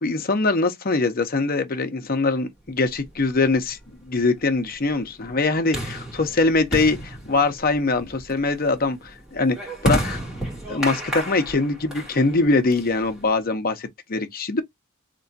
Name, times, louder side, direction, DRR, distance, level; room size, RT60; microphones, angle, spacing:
voice 1, 0.0-3.8 4.0-9.6 9.8-10.2 10.7-14.6, left 3 dB, 45° left, 0.7 m, -22 dB
sound 1, 3.0-13.4, right 1 dB, 5° right, 2.0 m, -32 dB
3.4 x 2.9 x 2.6 m
head